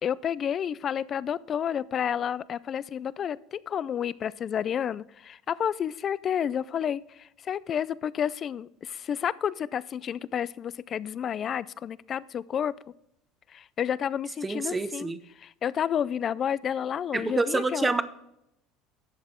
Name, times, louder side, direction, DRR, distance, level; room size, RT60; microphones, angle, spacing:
voice 1, 0.0-12.7 13.5-17.9, left 8 dB, 35° left, 20 dB, 0.3 m, -30 dB
voice 2, 14.4-15.2 17.1-18.0, right 3 dB, 15° right, 12 dB, 0.7 m, -27 dB
11.5 x 8.0 x 3.6 m, 0.80 s
cardioid pair, 130°, 0 cm